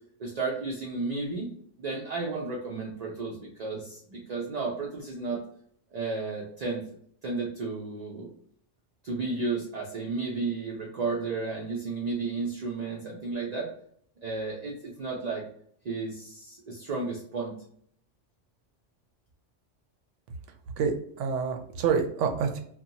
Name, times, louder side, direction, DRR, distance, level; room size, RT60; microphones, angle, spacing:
voice 1, 0.2-1.5 1.8-5.4 5.9-6.8 7.2-8.3 9.0-13.7 14.2-15.4 15.8-17.6, right 3 dB, 55° right, -3 dB, 0.5 m, -33 dB
voice 2, 20.8-22.6, right 6 dB, 80° right, 5 dB, 0.9 m, -27 dB
2.6 x 2.2 x 2.7 m, 0.63 s
omnidirectional pair, 1.2 m